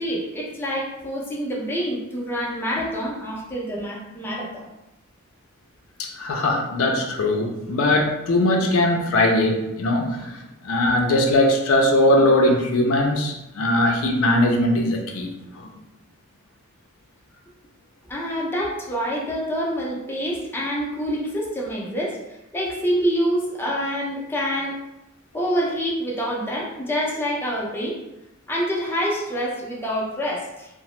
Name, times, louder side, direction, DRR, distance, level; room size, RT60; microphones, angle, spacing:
voice 1, 0.0-4.7 18.1-22.2 22.5-24.8 25.3-28.0 28.5-30.7, equal, 10° left, -4 dB, 0.5 m, -26 dB
voice 2, 6.0-15.7, left 1 dB, 80° left, 2 dB, 0.4 m, -20 dB
2.8 x 2.0 x 3.0 m, 0.95 s
head